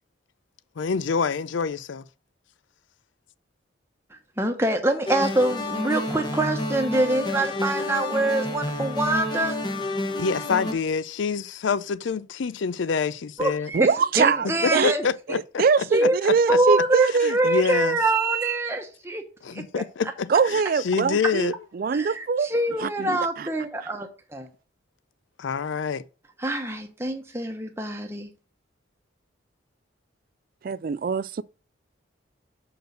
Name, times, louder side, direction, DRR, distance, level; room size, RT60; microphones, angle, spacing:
voice 1, 0.8-2.0 10.2-13.7 14.4-15.6 17.2-18.0 19.4-21.5 25.4-26.0, left 5 dB, 70° left, 0.4 m, -27 dB
voice 2, 4.4-9.6 13.4-13.9 14.2-15.0 15.9-16.2 16.5-19.2 19.5-19.8 21.9-24.5 26.4-28.3, right 2 dB, 15° right, 1.0 m, -25 dB
sound 1, 5.1-10.7, left 1 dB, 25° left, 1.1 m, -29 dB
voice 3, 13.7-14.9 15.3-17.3 18.0-18.6 20.3-22.5 22.8-23.5 30.6-31.4, right 5 dB, 45° right, 0.3 m, -23 dB
6.5 x 4.6 x 6.5 m
head